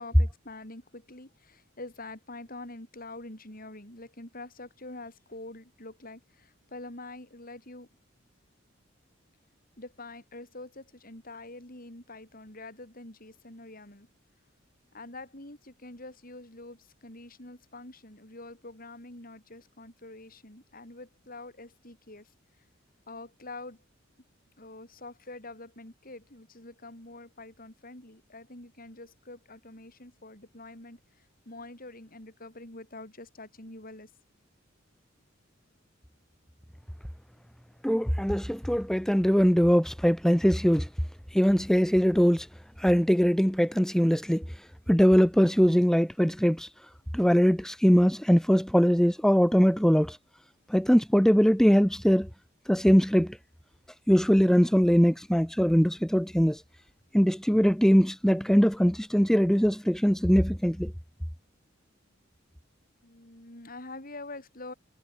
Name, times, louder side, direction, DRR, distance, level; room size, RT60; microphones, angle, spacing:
voice 1, 0.0-7.9 9.8-14.1 14.9-22.3 23.1-23.8 24.6-34.1 63.0-64.7, left 2 dB, 45° left, 7.8 m, -45 dB
voice 2, 37.8-40.9 41.3-42.5 42.8-44.4 44.9-46.7 47.1-50.2 50.7-52.3 52.7-53.4 54.1-56.6 57.1-60.9, equal, 5° left, 1.2 m, -22 dB
head